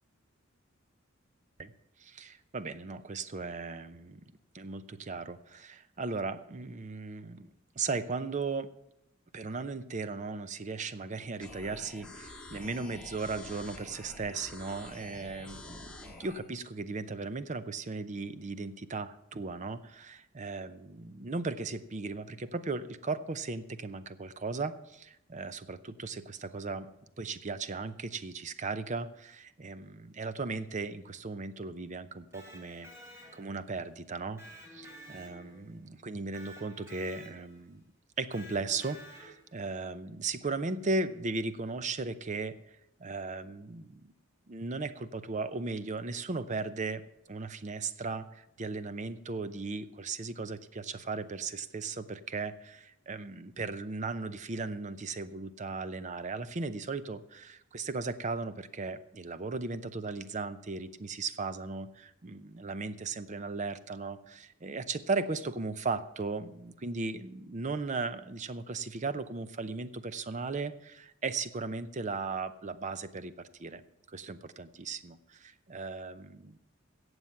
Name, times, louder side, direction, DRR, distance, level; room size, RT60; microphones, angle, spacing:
voice 1, 2.0-4.2 4.5-8.7 9.3-26.9 27.2-32.9 33.3-34.4 34.7-37.8 38.2-42.6 43.0-44.1 44.5-47.0 47.3-73.8 74.1-76.6, right 3 dB, 35° right, 13 dB, 0.6 m, -37 dB
sound 1, 11.4-16.4, left 2 dB, 5° left, 1.9 m, -47 dB
Electric guitar, 32.2-33.7 34.4-35.8 36.3-37.6 38.3-39.5, equal, 15° right, 3.2 m, -51 dB
14.5 x 8.1 x 5.8 m, 0.83 s
head